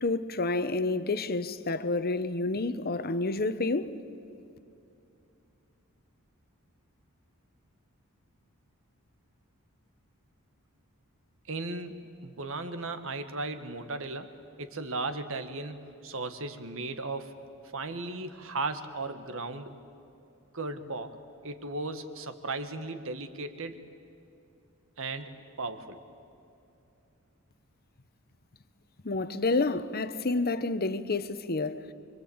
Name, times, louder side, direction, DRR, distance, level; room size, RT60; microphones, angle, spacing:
voice 1, 0.0-3.9 29.0-31.9, left 3 dB, 45° left, 1.0 m, -29 dB
voice 2, 11.5-14.3 14.6-17.4 17.7-19.7 20.5-23.8 25.0-26.0, right 3 dB, 65° right, 1.7 m, -36 dB
25.5 x 24.5 x 8.7 m
head